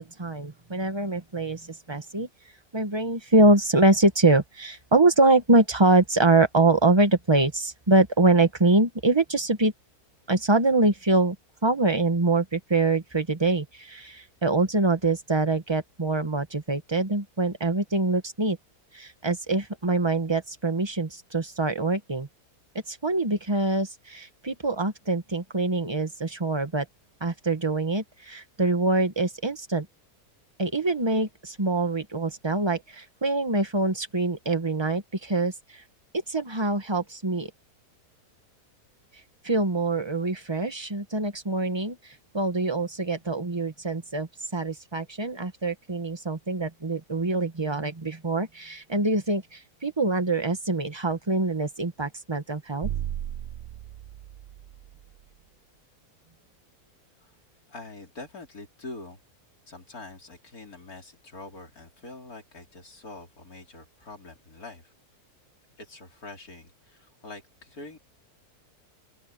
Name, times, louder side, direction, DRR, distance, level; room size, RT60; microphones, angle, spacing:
voice 1, 0.0-2.3 2.7-9.7 10.3-11.3 11.6-18.6 18.9-22.3 22.9-26.8 27.2-29.9 30.6-35.5 36.3-37.5 39.4-42.0 42.3-52.9, right 2 dB, 20° right, 1.3 m, -24 dB
sound 1, 52.8-55.2, right 11 dB, 65° right, 0.6 m, -35 dB
voice 2, 57.7-59.2 59.7-64.9 65.8-68.0, left 2 dB, 65° left, 4.3 m, -44 dB
open air
omnidirectional pair, 1.7 m